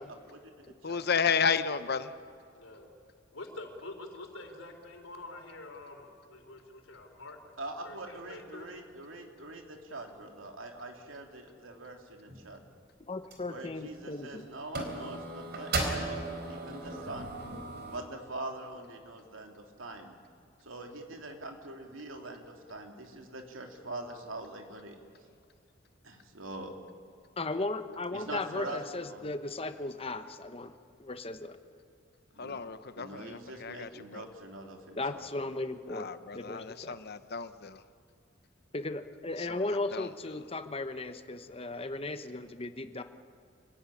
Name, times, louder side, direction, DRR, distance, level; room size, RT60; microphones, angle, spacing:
voice 1, 0.0-1.0 7.6-12.6 13.5-17.4 17.9-20.2 20.6-25.0 26.0-26.7 28.1-29.2 32.3-32.6 33.0-35.2, right 2 dB, 80° right, 3 dB, 2.9 m, -43 dB
voice 2, 0.8-2.1 32.4-34.2 35.9-37.8 39.9-40.1, left 6 dB, 55° left, 12 dB, 1.0 m, -32 dB
voice 3, 2.5-2.9 3.3-7.4 7.8-8.7, left 2 dB, 85° left, 4 dB, 3.9 m, -46 dB
sound 1, 12.3-12.5 13.3-13.4 13.8-14.3 14.7-18.0, right 2 dB, 55° right, 4.1 m, -36 dB
voice 4, 13.1-14.5 27.4-30.7 31.0-31.6 35.0-37.0 38.7-43.0, left 2 dB, 30° left, 9 dB, 1.1 m, -36 dB
25.5 x 16.5 x 10.0 m, 2.4 s
head